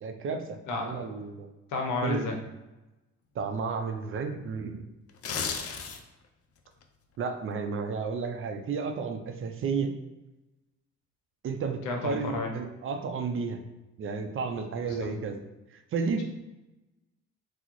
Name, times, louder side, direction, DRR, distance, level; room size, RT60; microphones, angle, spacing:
voice 1, 0.0-1.5 2.0-2.3 3.3-4.9 7.2-9.9 11.4-13.6 14.0-15.4 15.7-16.2, right 5 dB, 45° right, 6 dB, 0.4 m, -32 dB
voice 2, 0.7-1.0 1.7-2.4 11.8-12.5 14.8-15.1, left 3 dB, 90° left, 2 dB, 0.7 m, -31 dB
sound 1, 5.1-6.3 6.7-6.8, left 6 dB, 50° left, 0.4 m, -33 dB
3.5 x 2.0 x 2.9 m, 1.0 s
cardioid pair, 90°, 30 cm